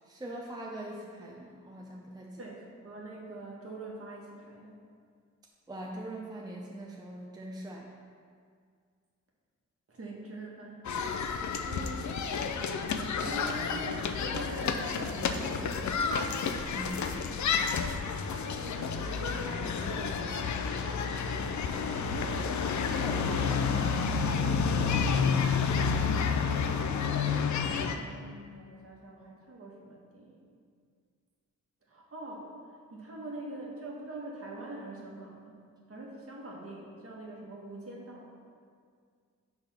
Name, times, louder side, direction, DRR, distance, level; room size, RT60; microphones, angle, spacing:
voice 1, 0.0-2.4 5.7-7.9 16.7-17.1 23.0-24.5, right 1 dB, 15° right, -2 dB, 0.6 m, -42 dB
voice 2, 2.4-4.8 9.9-11.3 11.6-12.5 12.8-16.5 18.6-20.8 27.5-30.5 31.9-35.5 35.9-38.3, right 2 dB, 50° right, -3 dB, 1.3 m, -44 dB
sound 1, 10.8-28.0, left 5 dB, 70° left, 0.5 m, -30 dB
6.4 x 3.5 x 5.7 m, 2.1 s
wide cardioid pair, 105°, 30 cm